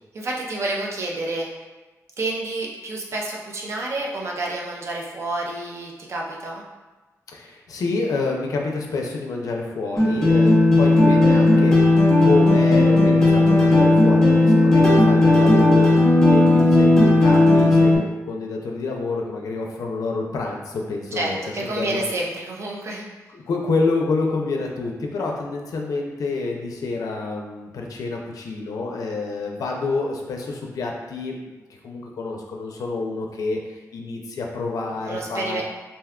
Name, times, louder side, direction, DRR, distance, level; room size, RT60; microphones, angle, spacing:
voice 1, 0.1-1.5 2.2-6.6 21.1-23.0 35.0-35.6, right 2 dB, 50° right, -2 dB, 0.5 m, -29 dB
voice 2, 7.3-11.9 12.2-15.9 16.3-21.4 21.8-22.0 23.3-31.6 31.8-33.6 33.9-35.6, left 3 dB, 75° left, 1 dB, 0.4 m, -28 dB
sound 1, 10.0-18.0, left 2 dB, 10° left, 0.6 m, -15 dB
2.6 x 2.2 x 3.5 m, 1.2 s
wide cardioid pair, 175°, 6 cm